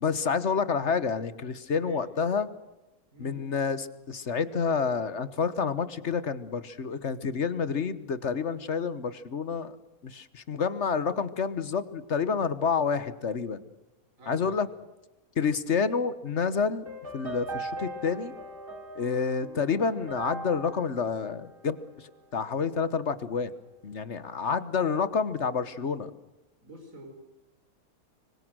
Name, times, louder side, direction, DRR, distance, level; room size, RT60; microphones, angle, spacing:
voice 1, 0.0-2.5 3.2-9.8 10.0-13.6 14.3-14.7 15.4-16.9 17.1-18.3 19.0-21.8 22.3-23.5 23.8-26.1, left 5 dB, 50° left, 14 dB, 1.4 m, -28 dB
voice 2, 3.1-3.5 14.2-14.7 26.6-27.1, equal, 60° right, 6 dB, 4.8 m, -47 dB
sound 1, 16.9-22.2, right 2 dB, 35° right, 4.6 m, -40 dB
25.5 x 24.0 x 6.2 m, 1.0 s
omnidirectional pair, 1.6 m